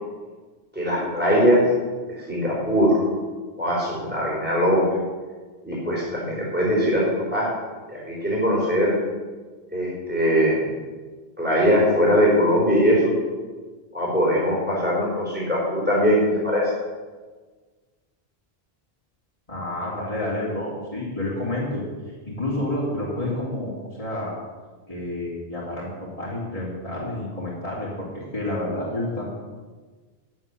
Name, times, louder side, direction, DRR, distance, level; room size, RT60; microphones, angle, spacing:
voice 1, 0.7-1.6 2.1-3.0 3.6-4.8 5.6-7.5 7.9-9.0 9.7-10.6 11.4-13.1 13.9-16.6, equal, 10° right, -6 dB, 4.6 m, -21 dB
voice 2, 19.5-21.8 22.2-24.3 24.9-25.9 26.2-29.3, left 1 dB, 35° left, -9 dB, 3.2 m, -29 dB
10.5 x 9.5 x 7.1 m, 1.4 s
omnidirectional pair, 1.1 m